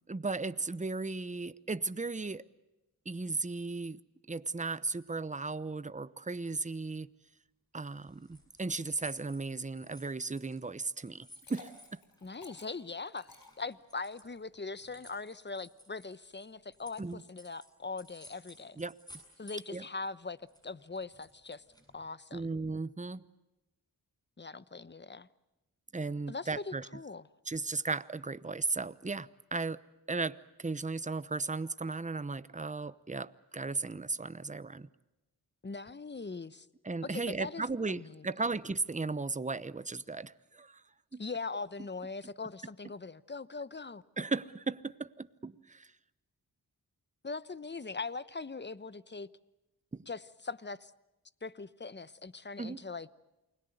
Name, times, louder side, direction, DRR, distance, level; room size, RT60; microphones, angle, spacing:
voice 1, 0.1-2.4 3.1-4.0 4.3-7.1 7.7-12.0 17.0-17.2 18.8-19.0 19.7-19.9 22.3-23.2 25.9-26.9 27.5-29.8 30.1-34.9 36.8-40.8 41.1-41.2 44.2-45.9 49.9-50.1 52.6-52.8, right 3 dB, 20° right, 0.9 m, -36 dB
sound 1, 8.0-12.8 13.1-17.7 18.0-19.9 20.2-22.1, equal, 10° left, 7.8 m, -56 dB
Liquid, 11.2-14.2, left 3 dB, 65° left, 5.2 m, -55 dB
voice 2, 12.2-13.3 13.6-18.8 19.4-20.4 20.6-21.6 21.9-22.5 24.4-25.3 26.3-27.2 35.6-36.7 37.0-38.2 41.2-44.0 47.2-49.3 50.1-50.9 51.4-53.1, left 4 dB, 30° left, 1.0 m, -41 dB
29.0 x 21.5 x 8.0 m
cardioid pair, 55°, 38 cm